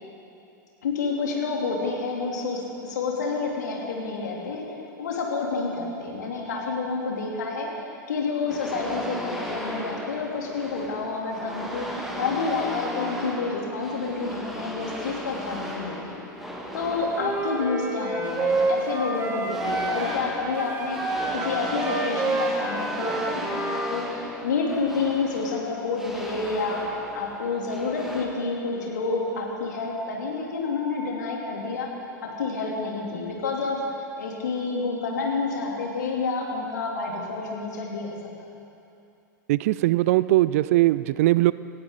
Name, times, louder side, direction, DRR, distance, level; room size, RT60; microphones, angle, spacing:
voice 1, 0.8-16.2 16.7-31.9 32.2-33.8 34.2-38.3, left 4 dB, 60° left, -2 dB, 3.0 m, -29 dB
sound 1, 8.5-28.3, equal, ahead, 1.8 m, -36 dB
Wind instrument woodwind instrument, 17.1-20.2 20.5-23.9, right 2 dB, 25° right, 2.4 m, -28 dB
voice 2, 39.5-41.5, right 17 dB, 45° right, 17 dB, 0.3 m, -20 dB
18.0 x 16.0 x 3.9 m, 2.6 s
figure-of-eight pair, 90°, 10 cm